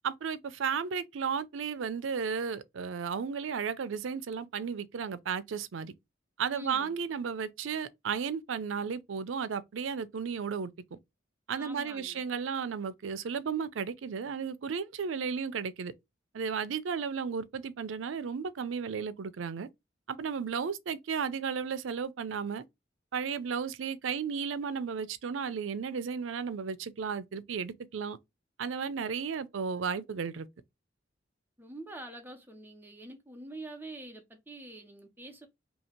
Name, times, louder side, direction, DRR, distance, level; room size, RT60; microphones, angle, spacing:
voice 1, 0.0-5.9 6.4-11.0 11.5-15.9 16.3-19.7 20.1-22.6 23.1-28.2 28.6-30.5, right 6 dB, 85° right, 0.4 m, -34 dB
voice 2, 6.5-6.9 11.6-12.2 31.6-35.5, right 1 dB, 10° right, 0.7 m, -46 dB
2.8 x 2.7 x 4.3 m
head